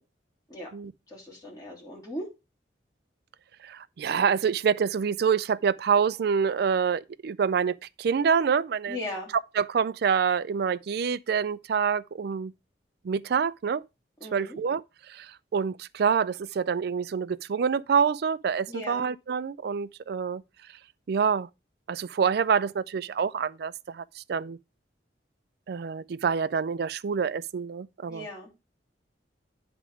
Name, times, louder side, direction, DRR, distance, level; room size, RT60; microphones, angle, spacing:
voice 1, 1.1-2.3 8.9-9.3 14.2-14.6 18.7-19.0 28.1-28.5, left 1 dB, 20° left, 3.2 m, -38 dB
voice 2, 3.6-9.0 9.6-12.5 13.0-13.8 14.3-14.8 15.1-15.3 15.5-20.4 21.1-21.5 21.9-24.6 25.7-28.2, right 6 dB, 60° right, 0.4 m, -26 dB
9.7 x 3.6 x 4.9 m
head